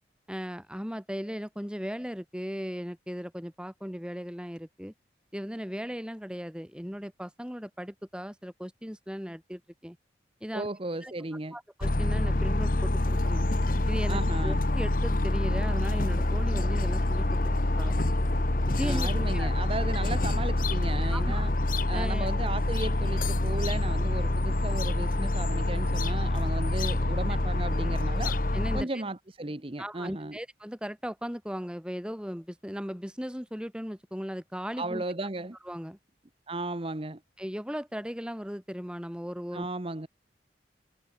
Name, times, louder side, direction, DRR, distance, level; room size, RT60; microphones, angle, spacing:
voice 1, 0.3-4.9 5.3-10.0 10.4-10.7 11.0-11.1 11.5-13.5 13.9-17.4 17.8-18.2 18.7-19.5 21.1-21.5 21.9-22.3 28.2-29.0 29.8-35.0 35.6-36.0 37.4-39.7, equal, 5° right, 4.5 m, -37 dB
voice 2, 10.5-11.6 14.1-14.6 18.8-21.5 21.9-28.3 28.7-30.4 34.8-35.6 36.5-37.2 39.5-40.1, right 2 dB, 30° right, 1.1 m, -35 dB
sound 1, 11.8-28.8, left 2 dB, 50° left, 1.2 m, -26 dB
head